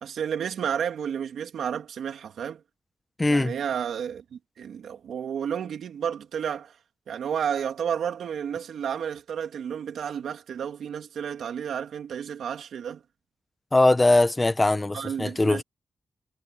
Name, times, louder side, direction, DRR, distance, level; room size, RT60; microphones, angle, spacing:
voice 1, 0.0-2.6 3.3-6.8 7.1-13.0 14.9-15.6, right 8 dB, 90° right, 3.0 m, -31 dB
voice 2, 3.2-3.5 13.7-15.6, left 2 dB, 15° left, 1.2 m, -21 dB
wide cardioid pair, 135°, 0 cm